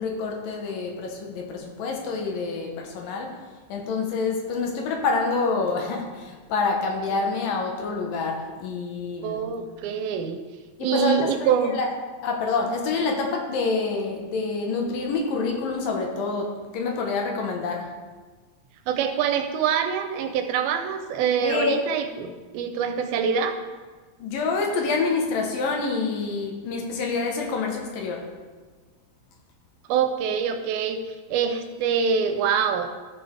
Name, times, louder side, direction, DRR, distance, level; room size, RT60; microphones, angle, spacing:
voice 1, 0.0-3.4 3.7-9.5 10.8-11.9 12.2-17.9 21.4-21.8 24.2-28.3, left 4 dB, 70° left, 1 dB, 2.7 m, -27 dB
voice 2, 9.2-10.4 10.8-11.8 18.9-23.6 29.9-31.0 31.3-32.9, right 7 dB, 90° right, 7 dB, 2.5 m, -25 dB
13.0 x 6.9 x 3.4 m, 1.4 s
omnidirectional pair, 4.3 m